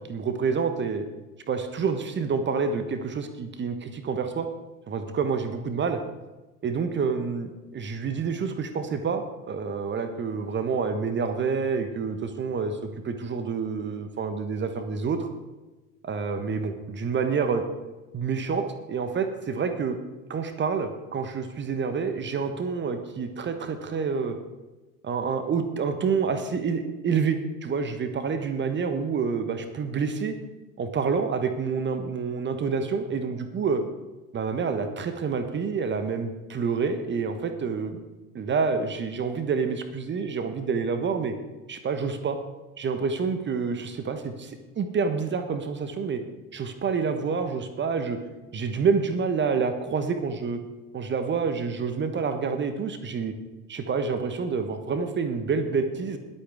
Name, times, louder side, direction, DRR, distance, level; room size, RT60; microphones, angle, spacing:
voice 1, 0.1-1.0 1.5-4.5 4.9-6.0 6.6-15.3 16.0-17.6 18.1-20.0 20.3-24.4 25.0-30.3 30.8-33.8 34.3-38.0 38.3-41.3 41.7-42.4 42.8-46.2 46.5-48.2 48.5-50.6 50.9-53.3 53.7-56.2, right 5 dB, 25° right, 8 dB, 1.2 m, -28 dB
21.5 x 8.3 x 3.6 m, 1.1 s
figure-of-eight pair, 70°, 44 cm